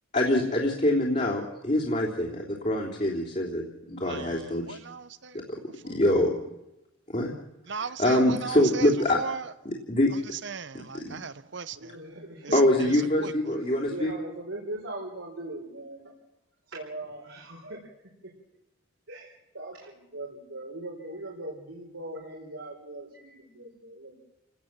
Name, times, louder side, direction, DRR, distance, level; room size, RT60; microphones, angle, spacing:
voice 1, 0.1-4.8 5.3-5.6 5.8-6.3 7.1-7.3 7.8-9.2 9.7-10.1 10.7-11.2 12.5-14.1, left 1 dB, 35° left, 3.5 m, -25 dB
voice 2, 4.0-4.4 4.7-5.4 5.9-6.0 7.7-8.9 9.1-9.4 10.4-11.8 13.2-13.3, right 5 dB, 60° right, 0.9 m, -36 dB
voice 3, 11.7-13.2 13.6-16.0 16.7-18.0 18.2-18.3 19.1-24.2, right 1 dB, 75° right, 4.7 m, -40 dB
29.5 x 18.5 x 7.5 m
head